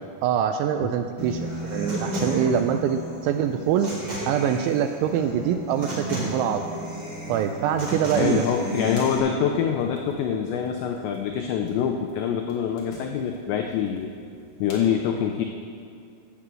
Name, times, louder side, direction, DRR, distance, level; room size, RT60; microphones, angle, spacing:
voice 1, 0.2-3.9 4.3-6.6 7.3-8.4, right 9 dB, 85° right, 7 dB, 2.7 m, -24 dB
Human voice / Acoustic guitar, 1.2-9.2, equal, 25° right, 4.3 m, -32 dB
Bowed string instrument, 6.6-11.5, equal, 55° right, 3.9 m, -41 dB
voice 2, 8.2-14.1 14.6-15.4, left 8 dB, 80° left, 4 dB, 2.6 m, -25 dB
sound 1, 8.5-14.7, left 1 dB, 50° left, 3.5 m, -50 dB
16.0 x 7.1 x 7.6 m, 2.4 s
omnidirectional pair, 5.8 m